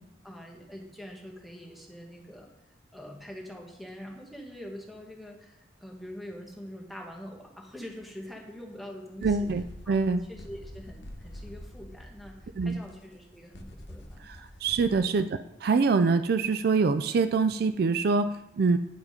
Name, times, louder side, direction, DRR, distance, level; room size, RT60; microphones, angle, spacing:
voice 1, 0.2-2.5 2.9-9.5 9.8-14.3, equal, ahead, 0 dB, 1.3 m, -44 dB
sound 1, 7.8-7.9 9.2-15.0, left 1 dB, 70° left, 0.9 m, -46 dB
voice 2, 9.2-10.2 12.6-12.8 14.3-15.3 15.6-18.8, right 4 dB, 60° right, 11 dB, 0.4 m, -25 dB
9.4 x 4.8 x 5.0 m, 0.85 s
head